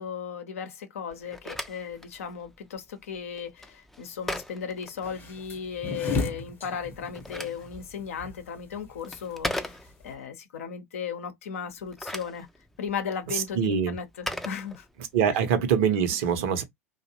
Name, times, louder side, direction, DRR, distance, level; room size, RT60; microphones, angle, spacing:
voice 1, 0.0-9.8 10.0-12.5 12.8-14.9, left 7 dB, 70° left, 0.6 m, -36 dB
Telephone, 1.1-5.6 6.9-10.3 11.7-15.3, left 1 dB, 5° left, 0.4 m, -39 dB
sound 1, 5.0-10.1, left 3 dB, 25° left, 0.7 m, -35 dB
voice 2, 13.3-14.0 15.1-16.6, right 7 dB, 60° right, 0.7 m, -24 dB
2.5 x 2.0 x 2.8 m
figure-of-eight pair, 80°, 8 cm